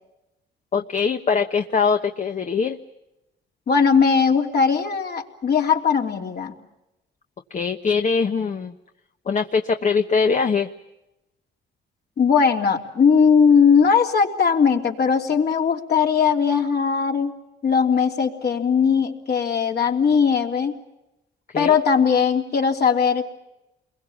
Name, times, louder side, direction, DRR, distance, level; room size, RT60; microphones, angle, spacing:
voice 1, 0.7-2.8 7.5-8.7 9.3-10.7 21.5-21.8, left 5 dB, 40° left, 6 dB, 1.2 m, -22 dB
voice 2, 3.7-6.5 12.2-17.3 17.6-20.8 21.5-23.2, left 6 dB, 55° left, 2 dB, 3.2 m, -19 dB
29.0 x 22.0 x 7.2 m, 0.93 s
cardioid pair, 90°, 20 cm